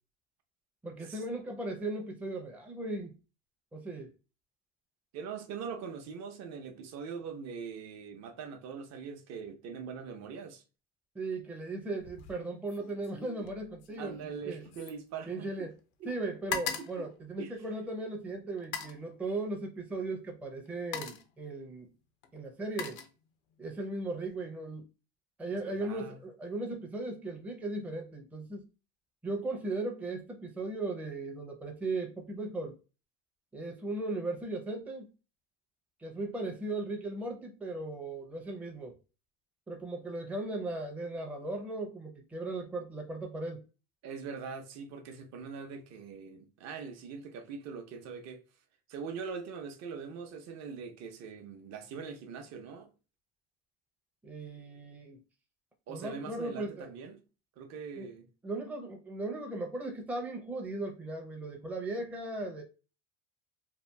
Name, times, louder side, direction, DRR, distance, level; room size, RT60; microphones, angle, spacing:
voice 1, 0.8-3.1 3.7-4.1 11.1-14.6 15.3-15.7 16.1-21.9 22.3-23.0 23.6-24.8 25.4-28.7 29.2-32.7 33.5-35.1 36.0-38.9 39.7-43.6 54.2-55.2 55.9-56.9 58.0-58.1 58.4-62.6, right 2 dB, 5° right, 0.5 m, -37 dB
voice 2, 5.1-10.6 14.0-15.7 16.0-16.1 16.8-17.1 17.4-17.5 25.5-26.2 44.0-48.4 48.9-52.9 55.9-57.2 57.6-58.3, right 6 dB, 50° right, 0.6 m, -42 dB
Fantine-tirelire et pièces, 12.0-12.4 12.7-15.8 16.1-18.0 18.6-19.1 20.1-20.3 20.7-21.4 22.2-23.6 24.0-24.4, left 6 dB, 90° left, 0.6 m, -41 dB
2.8 x 2.4 x 2.2 m
supercardioid pair, 115°, 34 cm